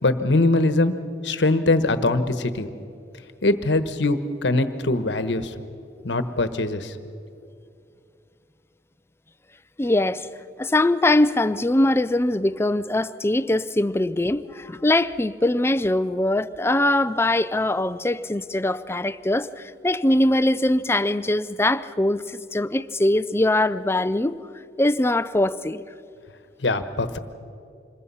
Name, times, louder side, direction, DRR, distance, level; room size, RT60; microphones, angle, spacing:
voice 1, 0.0-0.9 1.2-2.7 3.4-5.5 6.0-7.0 26.6-27.2, left 2 dB, 85° left, 1.2 m, -22 dB
voice 2, 9.8-10.3 10.6-24.4 24.8-25.8, left 1 dB, 15° left, 0.5 m, -22 dB
26.5 x 21.5 x 5.6 m
head